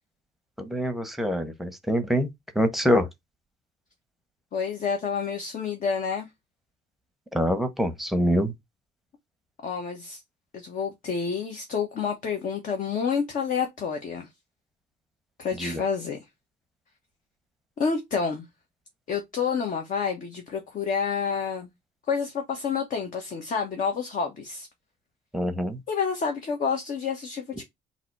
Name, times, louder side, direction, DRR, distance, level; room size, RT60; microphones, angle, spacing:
voice 1, 0.6-2.3 2.5-3.1 7.3-8.5 15.6-15.8 25.3-25.8, equal, ahead, 0.9 m, -25 dB
voice 2, 4.5-6.3 9.6-10.2 10.5-14.3 15.4-16.2 17.8-18.4 19.1-21.7 22.1-24.7 25.9-27.6, left 6 dB, 50° left, 1.3 m, -29 dB
3.8 x 2.9 x 4.5 m
cardioid pair, 110°, 17 cm